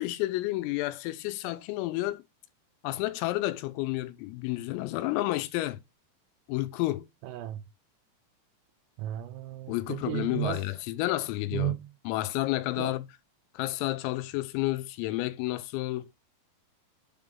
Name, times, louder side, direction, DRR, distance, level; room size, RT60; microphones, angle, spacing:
voice 1, 0.0-2.2 2.8-5.8 6.5-7.1 9.7-11.8 12.1-13.0 13.5-16.1, left 17 dB, 90° left, 3.4 m, -30 dB
voice 2, 7.2-7.6 9.0-10.6 11.5-11.9 12.8-12.9, right 15 dB, 85° right, 3.4 m, -34 dB
7.6 x 3.7 x 5.3 m
omnidirectional pair, 5.9 m